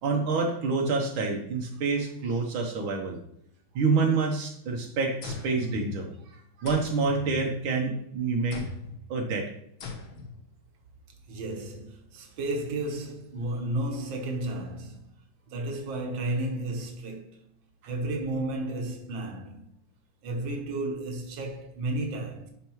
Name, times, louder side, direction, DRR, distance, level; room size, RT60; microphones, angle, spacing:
voice 1, 0.0-3.2 3.8-8.7 9.1-9.5 17.8-17.9, right 4 dB, 85° right, 1.8 m, -27 dB
sound 1, 5.2-6.3 6.7-7.9 8.5-9.1 9.8-10.4, left 4 dB, 75° left, 1.9 m, -39 dB
voice 2, 11.3-15.1 15.5-17.5 17.9-19.7 20.2-22.5, right 2 dB, 70° right, 1.8 m, -33 dB
11.5 x 4.5 x 3.1 m
omnidirectional pair, 2.2 m